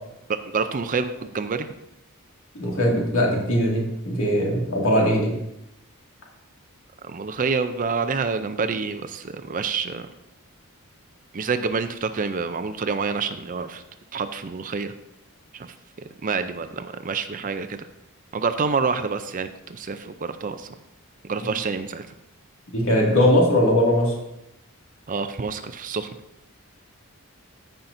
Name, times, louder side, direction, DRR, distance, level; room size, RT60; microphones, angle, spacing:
voice 1, 0.3-1.7 7.0-10.1 11.3-13.8 14.1-14.9 15.5-17.9 18.3-20.7 21.2-22.1 25.1-26.2, right 5 dB, 40° right, 10 dB, 0.5 m, -27 dB
voice 2, 2.5-5.4 22.7-24.1, equal, 65° left, -2 dB, 2.2 m, -20 dB
14.5 x 5.8 x 2.6 m, 0.85 s
head